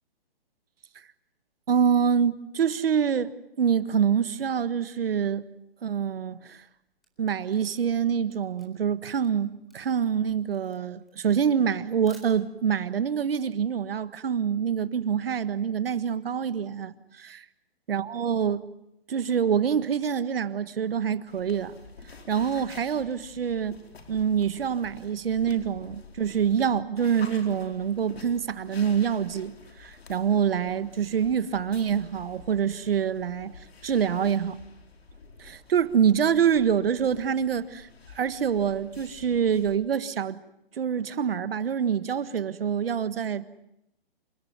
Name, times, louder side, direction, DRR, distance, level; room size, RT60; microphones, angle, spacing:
voice 1, 1.7-5.4 5.8-6.6 7.2-17.4 17.9-18.6 19.1-21.7 22.3-23.8 24.1-29.5 29.8-33.5 33.8-34.6 35.4-37.9 38.1-40.4 40.8-43.6, right 7 dB, 70° right, 1.6 m, -26 dB
Camera, 6.7-12.8, right 2 dB, ahead, 4.1 m, -58 dB
sound 1, 21.3-39.8, left 4 dB, 90° left, 4.3 m, -49 dB
28.5 x 16.5 x 9.7 m
hypercardioid pair, 170°, 30 cm